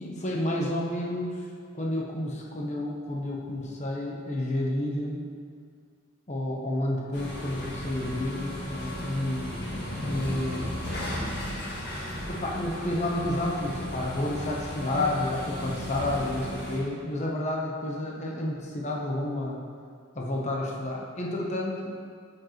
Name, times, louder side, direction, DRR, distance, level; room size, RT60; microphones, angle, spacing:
voice 1, 0.0-1.4 1.7-5.2 6.3-9.7 10.0-10.7 12.3-19.6 20.1-21.9, left 1 dB, 35° left, -2 dB, 1.0 m, -30 dB
sound 1, 7.1-16.8, left 1 dB, 50° left, 1.8 m, -35 dB
9.0 x 7.3 x 3.2 m, 2.1 s
head